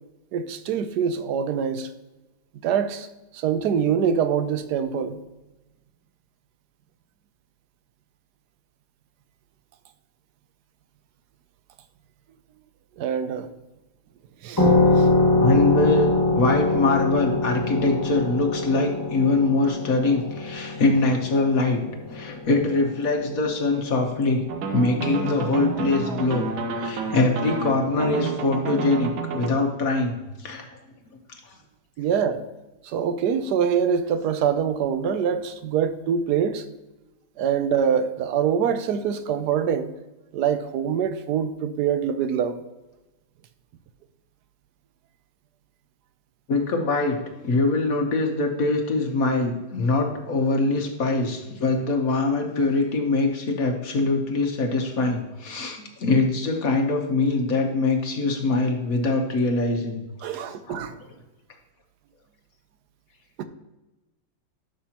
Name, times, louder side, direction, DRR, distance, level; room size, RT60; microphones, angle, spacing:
voice 1, 0.3-1.9 2.6-3.1 3.3-5.2 13.0-13.5 14.4-14.7 15.0-15.1 32.0-32.4 32.8-36.7 37.4-39.9 40.3-42.6 60.2-61.0 63.4-63.5, right 7 dB, 70° right, 10 dB, 1.0 m, -24 dB
sound 1, 14.6-23.8, left 2 dB, 15° left, 1.2 m, -23 dB
voice 2, 15.4-21.8 22.1-24.4 24.7-30.7 46.5-47.2 47.4-60.0 60.7-60.8, left 3 dB, 50° left, 3 dB, 1.3 m, -23 dB
sound 2, 24.5-29.5, right 5 dB, 85° right, 1.7 m, -30 dB
11.5 x 6.2 x 2.9 m, 1.1 s
omnidirectional pair, 2.1 m